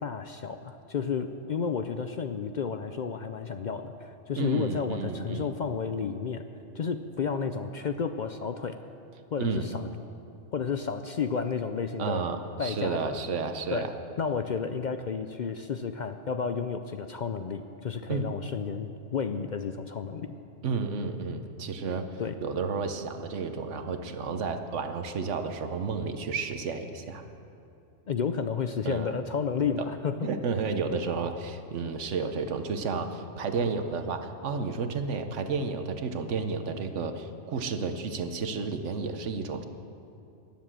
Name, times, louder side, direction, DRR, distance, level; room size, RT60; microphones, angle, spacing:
voice 1, 0.0-6.4 6.7-8.8 9.3-9.9 10.5-12.2 12.6-13.1 13.7-13.9 14.2-20.4 22.2-22.4 28.1-30.3, left 6 dB, 55° left, 8 dB, 0.5 m, -31 dB
voice 2, 4.3-5.5 9.4-9.7 12.0-13.9 18.1-18.3 20.6-22.1 22.4-27.2 28.8-29.1 29.6-29.9 30.2-39.6, right 4 dB, 75° right, 8 dB, 1.2 m, -31 dB
20.0 x 7.4 x 7.5 m, 2.7 s
omnidirectional pair, 1.2 m